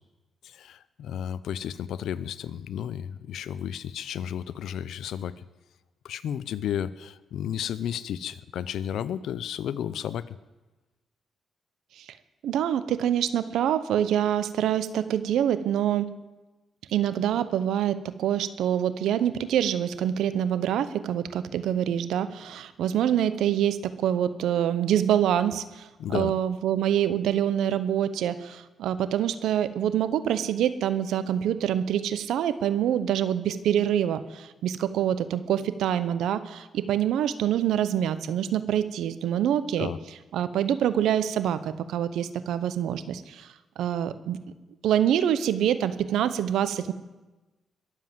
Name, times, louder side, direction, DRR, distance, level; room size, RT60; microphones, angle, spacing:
voice 1, 0.4-5.4 6.0-10.4 26.0-26.3 39.8-40.0, left 9 dB, 85° left, 17 dB, 0.6 m, -33 dB
voice 2, 12.4-16.1 16.9-25.9 26.1-39.9 40.3-43.5 43.8-44.4 44.8-46.9, right 10 dB, 90° right, 14 dB, 0.8 m, -26 dB
22.0 x 7.6 x 7.7 m, 1.1 s
cardioid pair, 85°, 0 cm